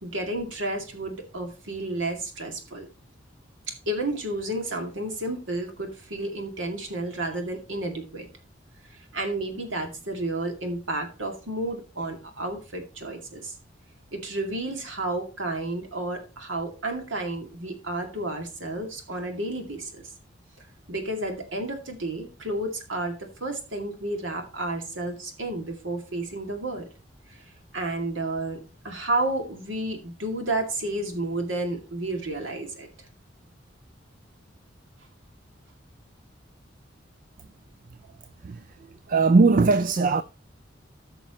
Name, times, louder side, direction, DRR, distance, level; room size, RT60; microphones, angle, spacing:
voice 1, 0.0-2.9 3.7-8.3 9.1-13.5 14.1-20.1 20.9-26.9 27.3-27.4 27.7-32.9, right 2 dB, 80° right, 2.3 m, -31 dB
voice 2, 38.4-40.2, right 3 dB, 45° right, 0.4 m, -20 dB
13.5 x 6.1 x 3.0 m
head